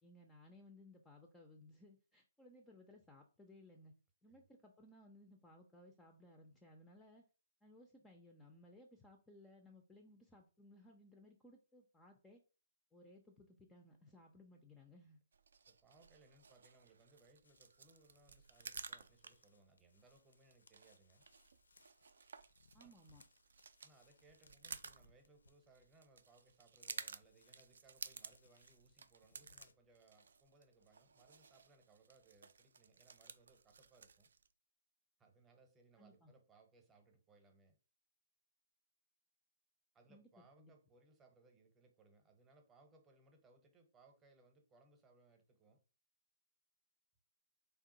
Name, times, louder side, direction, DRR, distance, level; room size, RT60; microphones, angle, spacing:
voice 1, 0.0-3.9 4.2-7.2 7.6-12.4 12.9-15.2 22.7-23.2 36.0-36.3 40.1-40.3 40.6-40.7, left 1 dB, 10° left, 0.4 m, -61 dB
sound 1, 15.3-34.5, right 5 dB, 60° right, 0.4 m, -55 dB
voice 2, 15.7-21.2 22.8-22.9 23.8-34.3 35.2-37.8 39.9-45.8, right 3 dB, 15° right, 0.8 m, -68 dB
sound 2, 17.4-29.7, left 3 dB, 70° left, 0.5 m, -71 dB
3.5 x 2.4 x 3.8 m
figure-of-eight pair, 130°, 0 cm